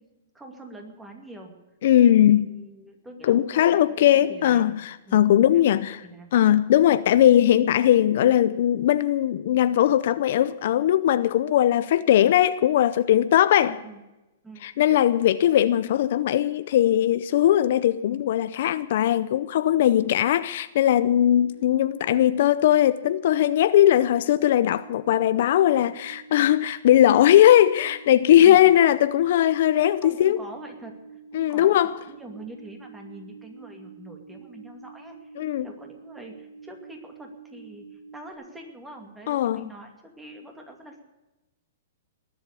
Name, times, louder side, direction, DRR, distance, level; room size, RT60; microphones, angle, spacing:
voice 1, 0.3-1.5 2.2-4.8 5.0-6.3 13.7-14.0 14.4-14.7 28.3-28.7 30.0-31.8 32.1-35.4 35.6-41.0, right 1 dB, 5° right, 2.5 m, -44 dB
voice 2, 1.8-2.5 3.3-6.0 6.3-13.8 14.6-30.4 31.3-31.9 35.4-35.7 39.3-39.7, left 11 dB, 55° left, 0.6 m, -19 dB
sound 1, 20.8-38.3, right 5 dB, 60° right, 6.0 m, -47 dB
20.5 x 7.8 x 8.4 m
hypercardioid pair, 155°, 0 cm